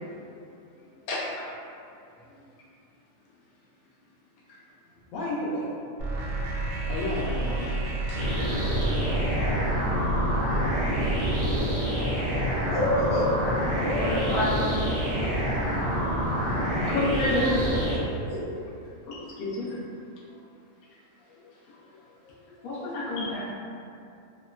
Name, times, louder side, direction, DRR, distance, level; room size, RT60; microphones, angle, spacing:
voice 1, 1.1-1.4 13.9-14.8 16.7-17.6 19.0-19.7 22.6-23.5, left 1 dB, 65° left, -7 dB, 0.6 m, -29 dB
voice 2, 5.1-5.7 6.0-9.6 19.2-19.3 20.2-20.4 21.2-21.5 21.9-22.7, left 1 dB, 80° left, -7 dB, 1.0 m, -37 dB
sound 1, 6.0-11.6, right 2 dB, 90° right, 1.0 m, -30 dB
sound 2, 8.2-18.0, equal, 50° right, 0.6 m, -27 dB
voice 3, 12.7-13.2 13.8-14.4 17.2-17.7 18.3-18.4, equal, 45° left, -10 dB, 0.9 m, -28 dB
2.9 x 2.1 x 2.3 m, 2.6 s
omnidirectional pair, 1.4 m